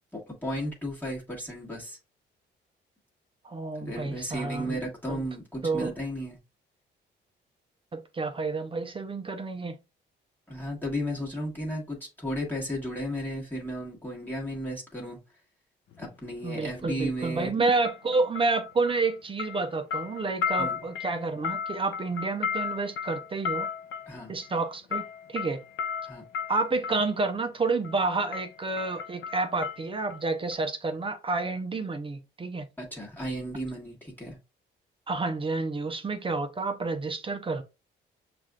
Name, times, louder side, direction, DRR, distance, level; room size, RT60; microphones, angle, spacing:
voice 1, 0.1-2.0 3.7-6.4 10.5-15.2 16.0-17.5 20.6-20.8 24.1-24.3 26.0-26.2 32.8-34.4, equal, 10° left, 1.4 m, -34 dB
voice 2, 3.4-4.8 5.1-5.3 5.6-5.9 7.9-9.8 16.4-23.7 24.3-25.6 26.5-32.7 35.1-37.6, right 3 dB, 25° right, 0.6 m, -29 dB
sound 1, 15.9-16.1 17.8-19.1 19.4-27.1 27.8-28.1 28.3-30.2 30.5-30.6, left 7 dB, 75° left, 0.5 m, -35 dB
5.9 x 2.5 x 2.3 m
cardioid pair, 90°, 20 cm